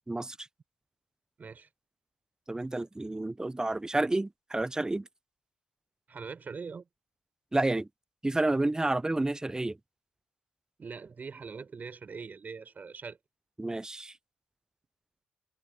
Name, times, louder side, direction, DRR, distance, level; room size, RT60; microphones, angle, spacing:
voice 1, 1.4-1.7 6.1-6.9 10.8-13.2, right 5 dB, 45° right, 5.2 m, -42 dB
voice 2, 2.5-5.1 7.5-7.9 8.2-9.8 13.6-14.1, right 2 dB, 15° right, 0.7 m, -30 dB
hypercardioid pair, 45°, 4 cm